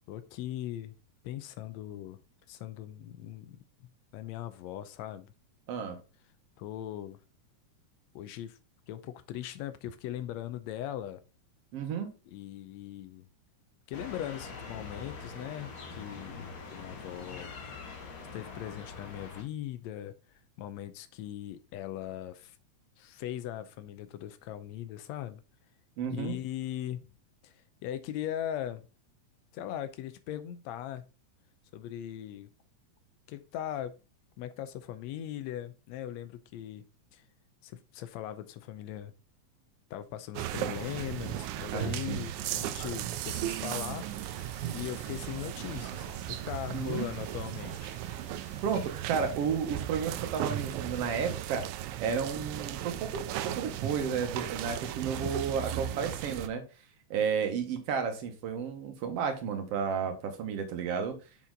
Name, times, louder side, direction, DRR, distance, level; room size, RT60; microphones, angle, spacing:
voice 1, 0.1-0.9 1.2-2.2 2.5-3.6 4.1-5.3 6.6-7.2 8.1-8.6 8.9-11.2 12.3-13.3 13.9-17.5 18.3-20.1 20.6-22.6 23.0-25.4 26.1-27.1 27.4-27.5 27.8-28.8 29.5-31.0 31.7-32.5 33.3-33.9 34.4-36.8 37.1-37.2 37.6-39.1 39.9-44.0 44.7-48.0, left 12 dB, 75° left, 1.7 m, -39 dB
voice 2, 11.7-12.1 26.0-26.3 41.7-42.2 46.7-47.1 48.6-51.6 52.0-56.6 57.1-61.2, right 6 dB, 60° right, 1.9 m, -32 dB
sound 1, 13.9-19.4, left 4 dB, 55° left, 1.0 m, -44 dB
sound 2, 40.3-56.5, right 12 dB, 80° right, 1.9 m, -36 dB
sound 3, 43.0-49.3, right 1 dB, 5° right, 1.2 m, -54 dB
7.2 x 4.3 x 3.8 m
omnidirectional pair, 3.5 m